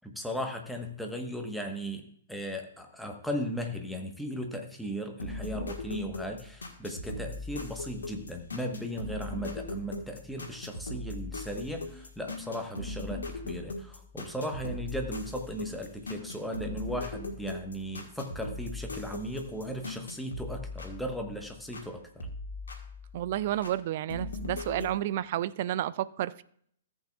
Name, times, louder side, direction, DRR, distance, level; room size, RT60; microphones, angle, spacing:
voice 1, 0.0-2.0 2.3-22.3, equal, ahead, 2 dB, 1.2 m, -37 dB
sound 1, 5.2-21.9 22.2-23.8 24.1-24.9, left 2 dB, 65° left, 1.6 m, -39 dB
voice 2, 23.1-26.4, right 13 dB, 45° right, 17 dB, 0.3 m, -31 dB
14.5 x 8.1 x 2.4 m, 0.63 s
figure-of-eight pair, 115°, 0 cm